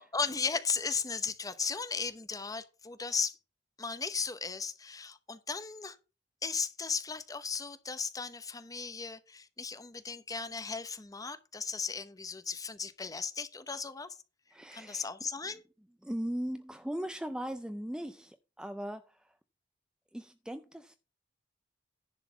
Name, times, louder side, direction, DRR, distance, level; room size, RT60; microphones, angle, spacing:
voice 1, 0.0-3.4 3.8-6.0 6.4-14.2 14.7-15.6, left 5 dB, 20° left, 0.8 m, -36 dB
voice 2, 14.5-15.1 16.0-19.4 20.1-21.0, equal, 5° right, 0.4 m, -38 dB
10.5 x 4.0 x 6.9 m
head